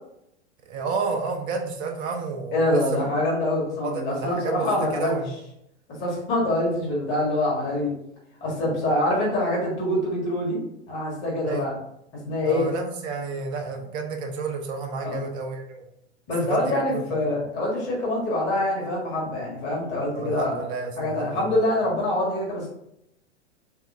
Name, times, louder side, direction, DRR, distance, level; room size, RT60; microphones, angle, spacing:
voice 1, 0.6-3.0 3.8-4.7 4.9-5.4 11.5-11.6 12.4-15.9 16.5-16.6 16.9-17.4 20.1-21.4, right 5 dB, 15° right, 3 dB, 0.3 m, -31 dB
voice 2, 2.5-5.1 6.0-7.9 8.4-10.6 10.9-11.8 12.1-12.7 15.0-15.2 16.3-20.6 21.0-22.7, left 1 dB, 35° left, -4 dB, 1.7 m, -25 dB
3.5 x 3.5 x 3.5 m, 0.79 s
figure-of-eight pair, 95°, 35 cm